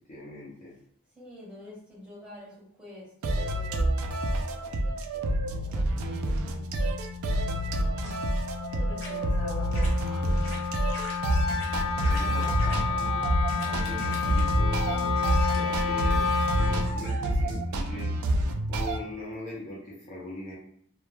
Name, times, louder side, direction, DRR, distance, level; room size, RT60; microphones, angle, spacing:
voice 1, 0.1-0.7 11.7-13.3 13.5-16.2 16.5-18.1 18.7-20.6, left 2 dB, 35° left, -6 dB, 0.6 m, -41 dB
voice 2, 1.1-6.9 7.5-8.2 8.7-10.6 12.3-12.6, left 1 dB, 5° right, -7 dB, 0.8 m, -46 dB
sound 1, 3.2-19.0, right 1 dB, 75° right, 0.3 m, -28 dB
Wind instrument woodwind instrument, 5.4-17.0, left 6 dB, 85° left, 0.3 m, -32 dB
sound 2, 8.0-8.2 9.0-9.1 9.7-9.9 10.4-10.6 10.9-11.1 11.5-11.7 12.0-12.8 13.5-14.4 15.1-15.8 16.6-17.3, left 1 dB, 70° left, 0.8 m, -42 dB
2.1 x 2.1 x 3.0 m, 0.65 s
head